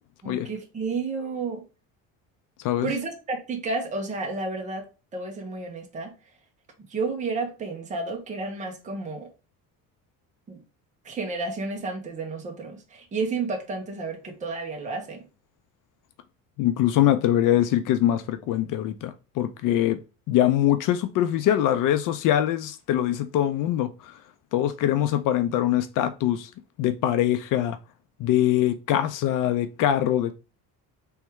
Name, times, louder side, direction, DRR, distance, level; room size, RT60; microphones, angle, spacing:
voice 1, 0.2-1.6 2.8-4.8 5.1-6.1 6.9-9.3 10.5-10.6 11.0-15.2, right 3 dB, 20° right, 0.8 m, -31 dB
voice 2, 16.6-20.0 20.3-24.2 24.5-26.5 26.8-27.8 28.2-30.3, left 12 dB, 60° left, 0.5 m, -23 dB
3.5 x 3.2 x 4.5 m
cardioid pair, 170°, 36 cm